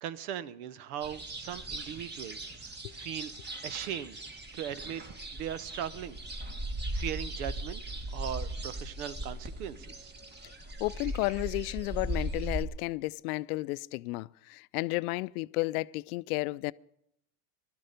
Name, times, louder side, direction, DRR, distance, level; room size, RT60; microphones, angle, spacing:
voice 1, 0.0-3.3 3.6-4.2 4.5-5.0 5.4-6.2 6.9-7.8 8.1-10.1, right 10 dB, 75° right, 0.9 m, -39 dB
sound 1, 1.0-12.6, right 1 dB, 20° right, 1.5 m, -38 dB
voice 2, 10.8-16.7, left 22 dB, 75° left, 0.5 m, -32 dB
16.5 x 12.5 x 5.1 m
hypercardioid pair, 90°, 45 cm